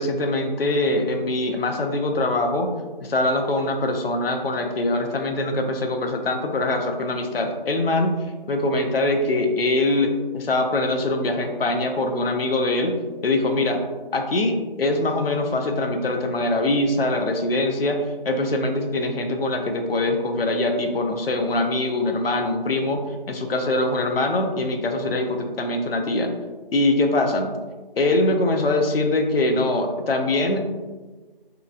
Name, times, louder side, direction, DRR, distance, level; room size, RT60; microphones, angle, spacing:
voice 1, 0.0-2.7 3.0-8.1 8.5-13.0 13.2-13.8 14.1-18.0 18.2-23.0 23.3-26.3 26.7-27.5 28.0-30.6, left 2 dB, 80° left, 4 dB, 0.5 m, -23 dB
2.8 x 2.4 x 2.4 m, 1.3 s
figure-of-eight pair, 170°, 29 cm